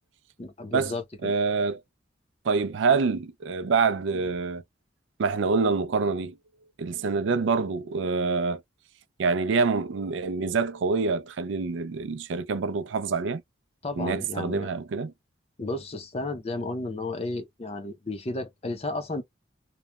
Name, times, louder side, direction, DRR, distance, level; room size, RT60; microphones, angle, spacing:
voice 1, 0.4-1.3 7.3-7.4 13.8-14.7 15.6-19.2, left 2 dB, 30° left, 0.5 m, -33 dB
voice 2, 1.2-1.8 2.4-4.6 5.2-6.4 6.8-8.6 9.2-13.4 14.0-15.1, right 4 dB, 75° right, 0.4 m, -26 dB
3.0 x 2.2 x 2.2 m
head